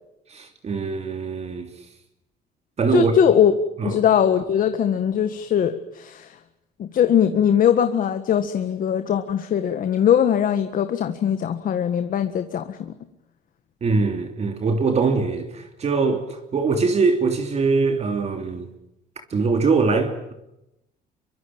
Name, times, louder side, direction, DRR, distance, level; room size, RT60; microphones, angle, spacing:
voice 1, 0.3-1.7 2.8-3.2 3.8-3.9 13.8-16.2 16.5-18.7 19.3-20.3, right 4 dB, 40° right, 3.2 m, -22 dB
voice 2, 2.9-3.5 3.8-6.4 6.8-12.9, left 9 dB, 55° left, 1.7 m, -21 dB
25.0 x 24.0 x 8.8 m
cardioid pair, 110°, 17 cm